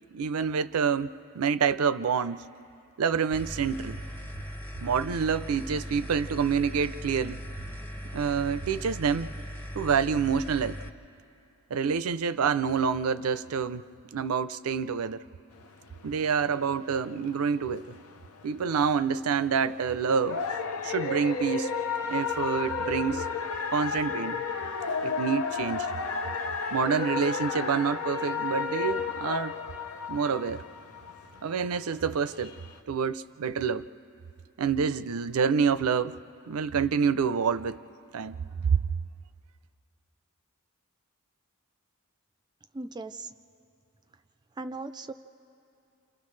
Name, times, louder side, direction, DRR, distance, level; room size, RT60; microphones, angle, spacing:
voice 1, 0.1-2.4 3.0-4.0 4.8-7.4 8.1-9.3 9.7-10.8 11.7-13.8 14.1-15.2 16.0-18.0 18.4-20.4 20.8-21.7 22.0-23.3 23.7-24.4 25.0-25.9 26.7-29.5 30.1-30.6 31.4-32.5 32.9-33.9 34.6-36.1 36.5-37.8 38.1-38.4 38.7-38.8, right 6 dB, 80° right, 14 dB, 0.5 m, -27 dB
sound 1, 3.3-10.9, equal, 10° left, 0.7 m, -39 dB
sound 2, 15.5-32.8, left 5 dB, 90° left, 0.9 m, -33 dB
voice 2, 42.7-43.3 44.6-45.1, right 3 dB, 20° right, 10 dB, 0.4 m, -37 dB
29.0 x 28.5 x 3.2 m, 2.7 s
head